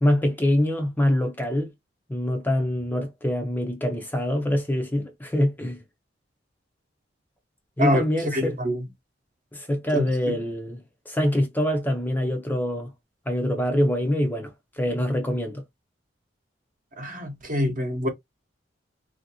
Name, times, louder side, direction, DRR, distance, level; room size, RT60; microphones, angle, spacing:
voice 1, 0.0-1.7 2.1-5.8 7.8-8.6 9.5-12.9 13.3-15.6, left 1 dB, 10° left, 0.5 m, -25 dB
voice 2, 7.8-8.9 9.9-10.1 17.0-18.1, equal, 45° right, 0.8 m, -25 dB
3.1 x 2.6 x 2.7 m
head